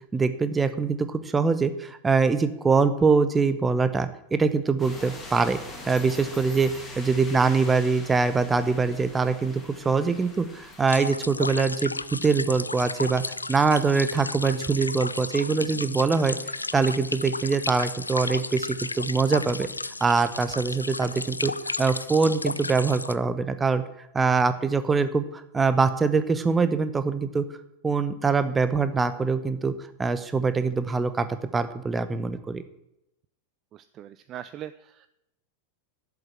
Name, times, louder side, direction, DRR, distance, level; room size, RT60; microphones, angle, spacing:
voice 1, 0.1-5.6 5.9-6.7 7.0-13.2 13.5-16.4 16.7-19.7 20.0-21.5 21.8-23.8 24.1-27.5 27.8-29.7 30.0-31.3 31.5-32.6, right 4 dB, 15° right, 11 dB, 0.9 m, -23 dB
sound 1, 4.8-10.8, left 2 dB, 15° left, 3.0 m, -42 dB
sound 2, 10.9-23.2, left 3 dB, 80° left, 0.4 m, -33 dB
voice 2, 33.7-35.1, right 11 dB, 30° right, 13 dB, 0.4 m, -41 dB
7.9 x 7.5 x 8.7 m, 0.84 s
figure-of-eight pair, 90°, 0 cm